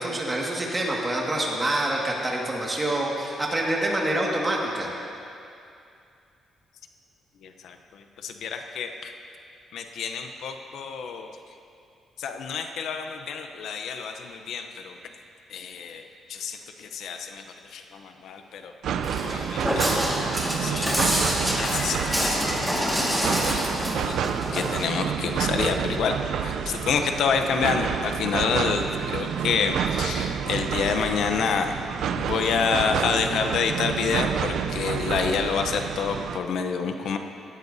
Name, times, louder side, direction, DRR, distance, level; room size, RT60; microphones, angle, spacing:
voice 1, 0.0-4.9, right 1 dB, 20° right, -2 dB, 1.8 m, -26 dB
voice 2, 7.4-9.1 9.7-11.3 12.2-15.0 15.5-16.0 16.3-17.4 17.7-18.7 19.2-19.9 20.6-21.1 21.6-23.8 24.0-24.2 24.5-26.1 26.4-31.7 32.2-37.2, left 6 dB, 70° left, 6 dB, 0.7 m, -28 dB
sound 1, 18.8-36.4, right 8 dB, 70° right, 0.5 m, -29 dB
Walk footsteps, 19.0-24.8, equal, 5° left, 1.8 m, -27 dB
17.5 x 13.5 x 2.7 m, 2.5 s
cardioid pair, 145°, 0 cm